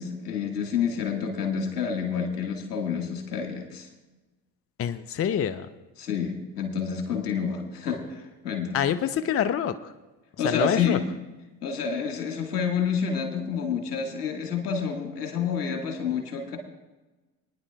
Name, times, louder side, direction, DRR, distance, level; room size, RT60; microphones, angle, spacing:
voice 1, 0.0-3.9 6.0-8.8 10.4-11.0 11.6-16.6, left 6 dB, 85° left, 3 dB, 1.7 m, -29 dB
voice 2, 4.8-5.7 8.7-9.9 10.4-11.0, left 9 dB, 30° left, 11 dB, 0.6 m, -26 dB
27.0 x 9.9 x 2.2 m, 1.1 s
hypercardioid pair, 60°, 46 cm